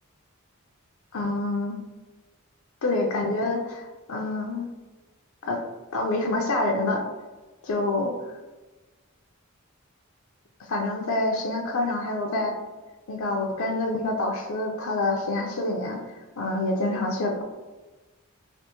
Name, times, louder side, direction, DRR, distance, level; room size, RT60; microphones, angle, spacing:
voice 1, 1.1-1.8 2.8-4.7 5.4-5.6 5.9-7.0 7.6-8.1 10.7-12.6 13.1-16.0 16.4-17.4, left 2 dB, 70° left, 1 dB, 0.5 m, -27 dB
3.4 x 2.5 x 2.9 m, 1.2 s
head